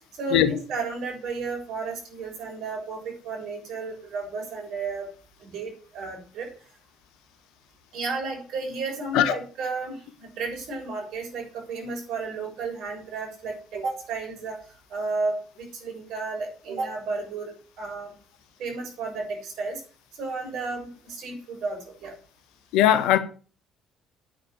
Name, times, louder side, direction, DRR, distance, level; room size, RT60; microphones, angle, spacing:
voice 1, 0.2-5.1 5.4-6.5 7.9-14.6 14.9-18.1 18.6-19.8 20.2-22.1, right 4 dB, 65° right, 7.0 m, -33 dB
voice 2, 22.7-23.2, left 11 dB, 70° left, 1.6 m, -19 dB
9.6 x 9.1 x 7.0 m
hypercardioid pair, 55°, 0 cm